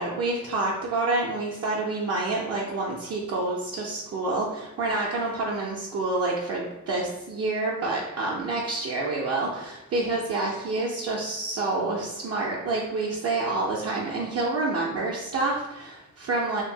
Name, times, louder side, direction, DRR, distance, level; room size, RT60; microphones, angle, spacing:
voice 1, 0.0-16.6, right 2 dB, 50° right, -3 dB, 0.5 m, -28 dB
2.9 x 2.6 x 2.6 m, 0.96 s
cardioid pair, 105°, 31 cm